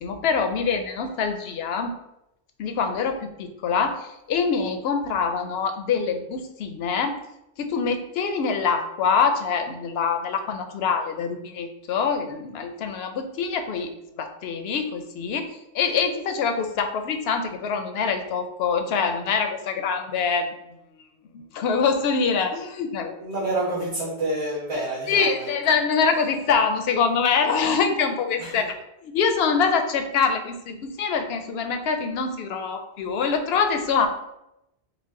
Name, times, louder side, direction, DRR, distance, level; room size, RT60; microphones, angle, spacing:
voice 1, 0.0-2.0 2.6-7.2 7.6-13.9 14.2-20.5 21.3-23.2 25.1-28.8 29.0-34.1, left 5 dB, 75° left, 6 dB, 0.8 m, -24 dB
voice 2, 23.2-25.5 28.4-28.6, right 1 dB, 85° right, -9 dB, 1.6 m, -28 dB
5.0 x 2.1 x 3.6 m, 0.84 s
omnidirectional pair, 1.1 m